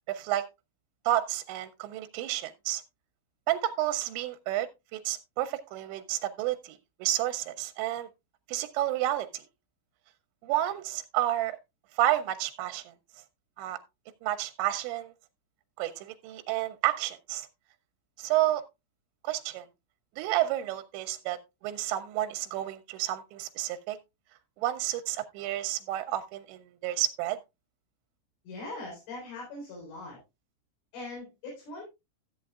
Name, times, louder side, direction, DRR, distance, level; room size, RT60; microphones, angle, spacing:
voice 1, 0.1-0.4 1.1-2.8 3.5-4.7 4.9-8.1 8.5-9.4 10.5-11.6 12.0-12.8 13.6-13.8 14.2-15.1 15.8-17.5 18.2-18.6 19.2-19.7 20.2-21.4 21.6-24.0 24.6-27.4, right 14 dB, 80° right, 2.7 m, -30 dB
voice 2, 28.4-30.2 30.9-31.8, left 2 dB, 70° left, 6.3 m, -41 dB
14.0 x 8.9 x 2.4 m
omnidirectional pair, 5.6 m